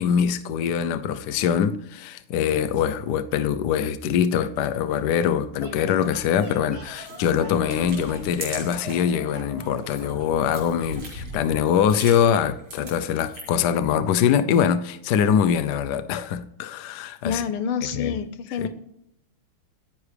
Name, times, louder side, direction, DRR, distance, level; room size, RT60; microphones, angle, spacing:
voice 1, 0.0-17.4 17.9-18.2 18.6-18.7, left 8 dB, 65° left, 1.1 m, -23 dB
sound 1, 5.6-10.4, right 2 dB, 30° right, 2.7 m, -44 dB
sound 2, 6.0-9.1 9.5-13.7, right 1 dB, 80° right, 6.7 m, -39 dB
voice 2, 17.2-18.7, left 7 dB, 85° left, 1.9 m, -27 dB
28.5 x 9.9 x 3.4 m
omnidirectional pair, 2.4 m